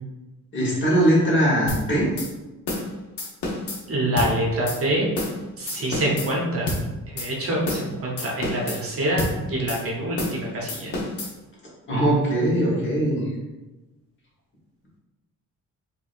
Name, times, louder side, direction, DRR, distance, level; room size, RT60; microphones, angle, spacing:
voice 1, 0.5-2.1 11.9-13.2, right 1 dB, 35° left, -5 dB, 1.3 m, -20 dB
sound 1, 1.7-1.8 2.2-2.3 2.7-2.9 3.2-3.8 4.2-4.3 4.7-4.8 5.2-5.4 5.7-6.3 6.7-6.8 7.2-7.3 7.7-7.9 8.2-8.8 9.2-9.3 9.7-9.8 10.2-10.4 10.7-11.3, left 2 dB, 90° left, 1.0 m, -28 dB
voice 2, 3.9-5.1 5.6-6.7 7.1-10.9, right 1 dB, 40° right, -3 dB, 0.9 m, -26 dB
4.6 x 2.8 x 2.5 m, 1.1 s
wide cardioid pair, 165°, 33 cm